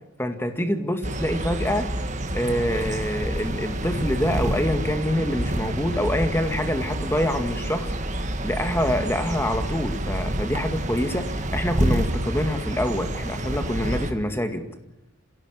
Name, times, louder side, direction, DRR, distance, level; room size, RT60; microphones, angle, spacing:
voice 1, 0.2-1.9 2.3-14.7, equal, 10° left, 7 dB, 1.9 m, -26 dB
sound 1, 1.0-14.1, right 1 dB, 35° right, 1.9 m, -28 dB
26.5 x 16.5 x 9.7 m, 0.92 s
head